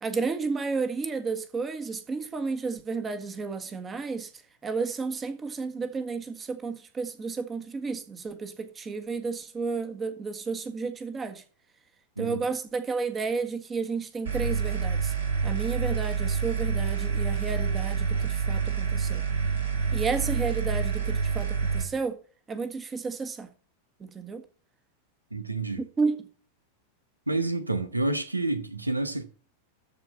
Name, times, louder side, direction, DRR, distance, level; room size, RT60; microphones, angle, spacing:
voice 1, 0.0-4.3 4.6-11.4 12.2-15.1 15.4-19.2 19.9-22.2 22.5-23.5 24.0-24.4 25.8-26.2, right 4 dB, 20° right, 1.6 m, -32 dB
sound 1, 14.3-21.8, right 6 dB, 65° right, 4.1 m, -27 dB
voice 2, 25.3-25.8 27.3-29.2, right 2 dB, 85° right, 1.0 m, -29 dB
13.5 x 4.8 x 5.7 m
figure-of-eight pair, 90°, 0 cm